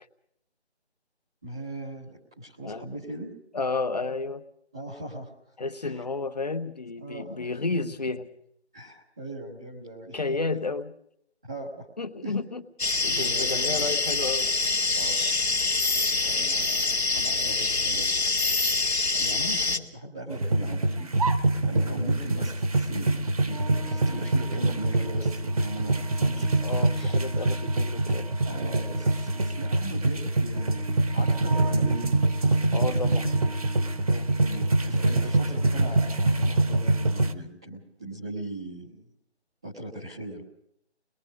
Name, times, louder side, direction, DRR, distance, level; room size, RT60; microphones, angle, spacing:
voice 1, 1.4-3.3 4.7-5.3 5.8-6.0 7.0-7.5 8.7-10.5 11.5-11.9 12.2-12.3 13.0-13.9 14.9-15.2 16.2-16.9 17.1-18.5 19.1-21.1 21.6-26.5 26.9-27.2 28.1-28.2 28.4-32.1 34.4-39.0 39.6-40.4, right 1 dB, 5° right, -9 dB, 0.8 m, -39 dB
voice 2, 3.5-4.4 5.6-8.3 10.1-10.9 12.0-12.6 13.0-14.5 26.6-28.3 32.7-33.3 34.1-34.3, left 3 dB, 35° left, 10 dB, 1.2 m, -31 dB
sound 1, 12.8-19.8, left 3 dB, 70° left, 2.3 m, -25 dB
sound 2, 20.3-37.3, right 2 dB, 35° right, 1.2 m, -25 dB
24.5 x 21.5 x 5.1 m, 0.70 s
figure-of-eight pair, 160°, 34 cm